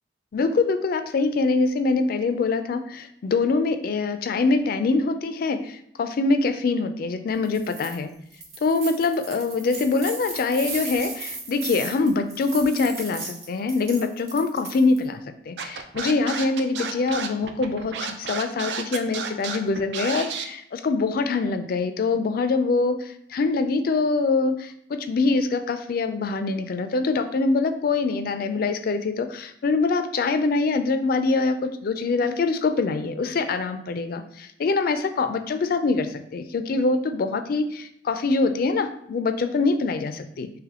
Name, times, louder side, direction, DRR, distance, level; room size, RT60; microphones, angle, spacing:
voice 1, 0.3-8.1 8.6-40.5, left 3 dB, 55° left, 9 dB, 0.4 m, -24 dB
sound 1, 7.4-8.0 8.3-15.0, right 3 dB, 35° right, 0.9 m, -36 dB
Scratching (performance technique), 15.6-20.5, right 6 dB, 70° right, 0.4 m, -31 dB
3.3 x 2.9 x 3.6 m, 0.70 s
head